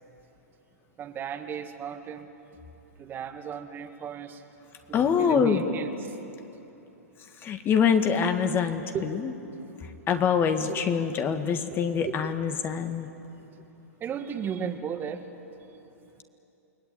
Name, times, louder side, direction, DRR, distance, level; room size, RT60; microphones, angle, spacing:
voice 1, 1.0-2.3 3.0-4.4 5.2-6.2 8.9-9.2 10.7-10.8 11.7-12.3 14.0-15.3 15.7-16.1, right 7 dB, 25° right, 7 dB, 1.6 m, -35 dB
voice 2, 4.9-5.6 7.4-9.3 10.1-13.1, left 7 dB, 25° left, 7 dB, 1.7 m, -25 dB
29.0 x 20.5 x 9.2 m, 2.9 s
hypercardioid pair, 120°, 8 cm